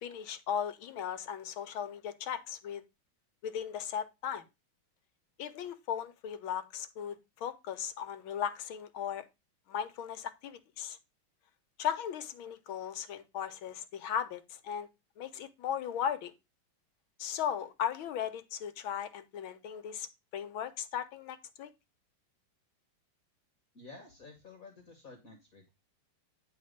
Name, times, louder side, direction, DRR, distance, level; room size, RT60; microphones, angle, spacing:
voice 1, 0.0-2.8 3.4-4.4 5.4-9.2 9.7-11.0 11.8-14.9 15.2-16.3 17.2-20.1 20.3-21.7, left 8 dB, 70° left, 1.6 m, -37 dB
voice 2, 23.7-25.7, left 3 dB, 45° left, 1.7 m, -52 dB
9.5 x 4.0 x 5.1 m
omnidirectional pair, 2.3 m